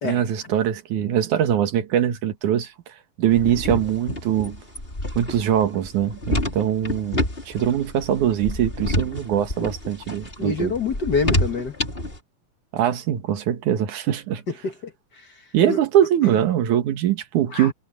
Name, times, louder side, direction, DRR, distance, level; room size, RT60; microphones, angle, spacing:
voice 1, 0.0-2.7 3.2-4.6 5.2-10.7 12.7-14.4 15.5-17.7, right 10 dB, 85° right, 3.0 m, -22 dB
sound 1, 3.3-12.2, left 1 dB, 20° left, 4.9 m, -28 dB
voice 2, 10.4-11.7 14.6-14.9 15.7-15.8 17.5-17.7, left 4 dB, 40° left, 1.8 m, -26 dB
omnidirectional pair, 3.4 m